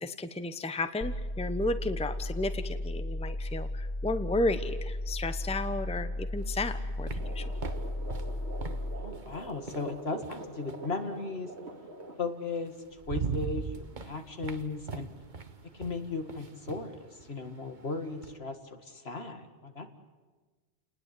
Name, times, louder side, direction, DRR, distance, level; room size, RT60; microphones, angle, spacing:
voice 1, 0.0-7.5, left 2 dB, 5° left, 10 dB, 0.9 m, -33 dB
sound 1, 1.0-9.0, left 1 dB, 25° left, 1.4 m, -35 dB
sound 2, 6.4-10.9 12.2-12.3 12.7-18.4, right 5 dB, 45° right, 1.4 m, -41 dB
sound 3, 7.1-12.2, right 2 dB, 75° right, 3.2 m, -45 dB
voice 2, 9.0-11.5 12.2-15.1 15.6-19.9, left 3 dB, 65° left, 6 dB, 2.3 m, -36 dB
29.5 x 20.0 x 8.4 m, 1.3 s
omnidirectional pair, 1.1 m